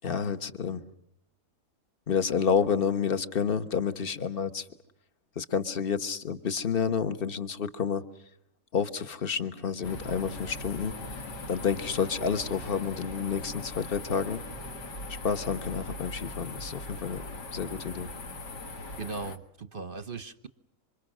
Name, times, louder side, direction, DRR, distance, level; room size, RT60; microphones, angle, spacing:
voice 1, 0.0-0.8 2.1-4.7 5.3-8.0 8.7-11.2 11.5-14.4 15.2-17.2 17.5-18.1, left 6 dB, 35° left, 11 dB, 1.3 m, -29 dB
sound 1, 9.8-19.4, left 2 dB, 70° left, 2.5 m, -40 dB
voice 2, 19.0-20.5, right 4 dB, 35° right, 12 dB, 1.0 m, -38 dB
27.5 x 26.0 x 6.3 m, 0.78 s
omnidirectional pair, 1.9 m